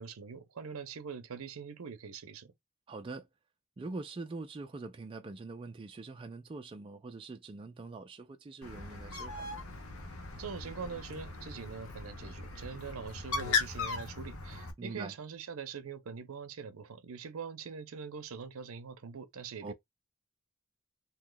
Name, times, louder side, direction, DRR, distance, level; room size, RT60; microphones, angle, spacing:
voice 1, 0.0-2.5 10.4-19.7, right 6 dB, 70° right, 0.6 m, -43 dB
voice 2, 2.9-3.3 3.8-9.6 14.8-15.1 19.6-19.7, right 3 dB, 25° right, 0.3 m, -43 dB
Bird, 8.6-14.7, left 4 dB, 75° left, 0.9 m, -38 dB
2.8 x 2.3 x 3.8 m
head